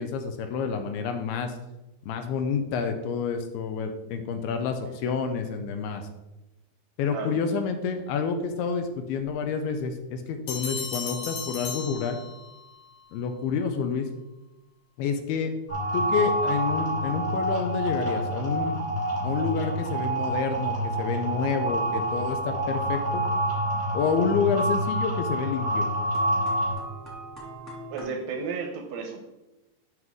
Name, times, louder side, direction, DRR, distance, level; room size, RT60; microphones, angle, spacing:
voice 1, 0.0-1.6 2.0-6.1 7.0-12.2 13.1-14.1 15.0-15.5 15.9-18.8 19.2-23.3 23.9-25.9, left 6 dB, 80° left, 6 dB, 2.5 m, -28 dB
voice 2, 7.1-7.6 27.9-29.2, right 5 dB, 80° right, 3 dB, 2.4 m, -33 dB
sound 1, 10.5-12.7, left 5 dB, 60° left, 2.2 m, -35 dB
sound 2, 15.7-26.7, right 1 dB, 25° left, 2.5 m, -27 dB
sound 3, 22.5-23.9 24.3-24.4 24.7-24.8 26.1-28.0, right 2 dB, 5° right, 1.4 m, -45 dB
7.5 x 6.1 x 3.7 m, 0.99 s
omnidirectional pair, 4.7 m